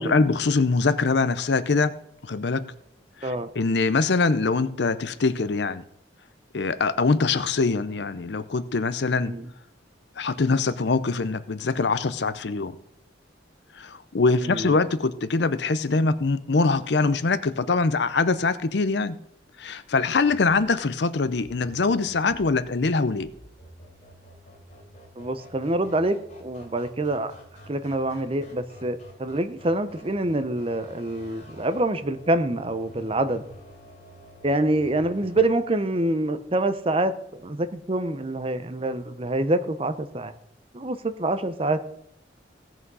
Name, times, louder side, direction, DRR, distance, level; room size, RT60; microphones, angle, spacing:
voice 1, 0.0-1.9 2.2-2.7 3.2-5.8 6.5-9.3 10.2-12.8 13.7-19.2 19.6-23.3, left 4 dB, 65° left, 14 dB, 0.6 m, -23 dB
voice 2, 14.4-14.8 25.2-27.3 27.7-33.4 34.4-40.3 40.7-41.8, right 1 dB, 30° right, 11 dB, 0.7 m, -26 dB
sound 1, 20.0-35.4, equal, 40° left, 3.6 m, -49 dB
16.5 x 6.1 x 5.5 m, 0.74 s
head